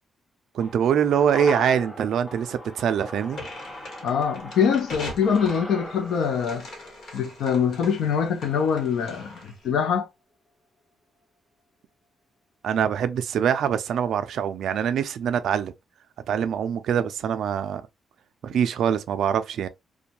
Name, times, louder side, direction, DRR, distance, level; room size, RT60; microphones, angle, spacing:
voice 1, 0.5-3.5 12.6-15.7 16.3-17.8 18.4-19.7, right 8 dB, 65° right, 0.3 m, -24 dB
sound 1, 0.6-9.1 9.4-9.5, left 1 dB, 10° left, 0.5 m, -40 dB
sound 2, 3.3-9.7, left 2 dB, 50° left, 1.1 m, -41 dB
voice 2, 4.0-6.7 7.1-10.1, left 7 dB, 70° left, 0.5 m, -24 dB
2.6 x 2.2 x 2.9 m
cardioid pair, 180°, 0 cm